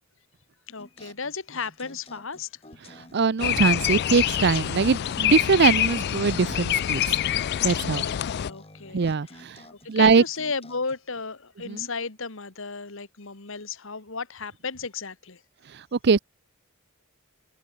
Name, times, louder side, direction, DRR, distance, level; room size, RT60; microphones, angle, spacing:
voice 1, 0.7-2.5 6.4-6.5 7.9-9.4 9.7-15.4, left 4 dB, 65° left, 2.0 m, -34 dB
sound 1, 0.8-11.2, left 2 dB, 30° left, 4.6 m, -51 dB
voice 2, 3.1-7.2 7.6-8.0 8.9-9.6 9.9-10.2 11.7-11.9 15.9-16.2, right 5 dB, 55° right, 0.6 m, -22 dB
sound 2, 3.4-8.5, left 11 dB, 50° left, 0.3 m, -25 dB
head